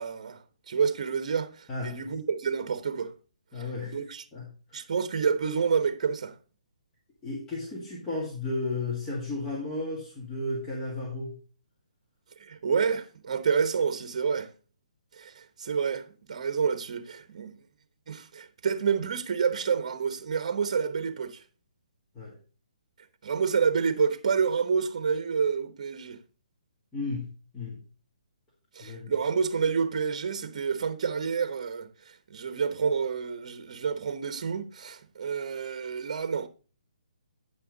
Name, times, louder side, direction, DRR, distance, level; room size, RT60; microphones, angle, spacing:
voice 1, 0.0-3.1 3.6-4.2 4.7-6.3 12.4-14.5 15.1-17.6 18.1-21.4 23.2-26.2 28.7-36.5, right 6 dB, 55° right, 1.0 m, -29 dB
voice 2, 1.7-2.0 3.5-4.0 4.3-4.8 7.2-11.4 22.1-22.4 26.9-27.8 28.8-29.1, left 2 dB, 15° left, 1.9 m, -34 dB
8.8 x 5.7 x 3.9 m
hypercardioid pair, 150°, 4 cm